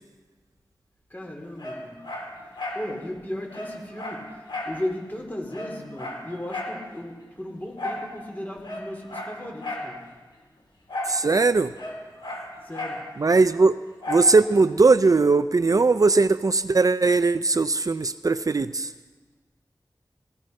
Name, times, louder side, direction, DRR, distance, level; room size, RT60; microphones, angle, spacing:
voice 1, 1.1-2.0 2.7-10.1 12.6-13.1, left 1 dB, 20° left, 1 dB, 3.4 m, -36 dB
Dog, 1.6-2.9 3.2-3.3 3.5-4.8 5.1-5.2 5.5-6.8 7.8-8.1 8.6-9.9 10.9-11.2 11.5-13.0 14.0-14.3 14.8-14.9, left 1 dB, 75° left, 3.6 m, -34 dB
voice 2, 11.1-11.7 13.2-13.8 14.1-18.9, right 3 dB, 45° right, 13 dB, 0.4 m, -19 dB
16.5 x 15.5 x 5.3 m, 1.3 s
wide cardioid pair, 75°, 8 cm